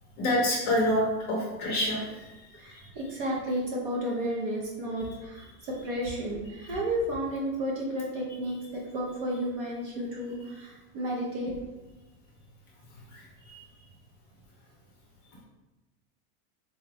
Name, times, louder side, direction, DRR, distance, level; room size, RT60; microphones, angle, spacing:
voice 1, 0.2-2.9 5.0-5.1 6.6-6.7 13.1-13.6, left 1 dB, 20° left, -4 dB, 0.6 m, -29 dB
voice 2, 2.5-11.7, equal, 35° right, -2 dB, 0.5 m, -32 dB
4.0 x 2.3 x 3.3 m, 1.1 s
supercardioid pair, 175°, 48 cm